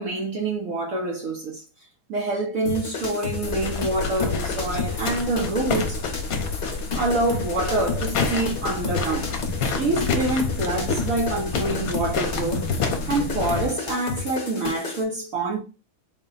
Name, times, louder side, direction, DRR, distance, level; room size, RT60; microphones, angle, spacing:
voice 1, 0.0-1.6 2.1-6.0 6.9-9.3 9.6-15.6, right 2 dB, 60° right, 1.0 m, -26 dB
sound 1, 2.7-15.0, left 4 dB, 45° left, 0.9 m, -32 dB
sound 2, 3.4-13.7, left 4 dB, 65° left, 1.1 m, -29 dB
4.0 x 2.2 x 3.8 m
omnidirectional pair, 1.8 m